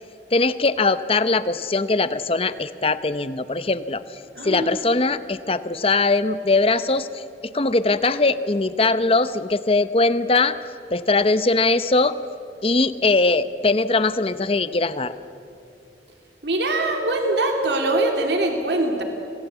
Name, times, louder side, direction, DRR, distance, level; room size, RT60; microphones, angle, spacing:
voice 1, 0.3-10.6 10.9-12.2 12.6-15.1, left 3 dB, 30° left, 13 dB, 0.8 m, -21 dB
voice 2, 4.4-4.8 16.4-19.0, right 2 dB, 70° right, 3 dB, 2.7 m, -22 dB
27.0 x 19.0 x 8.2 m, 2.6 s
head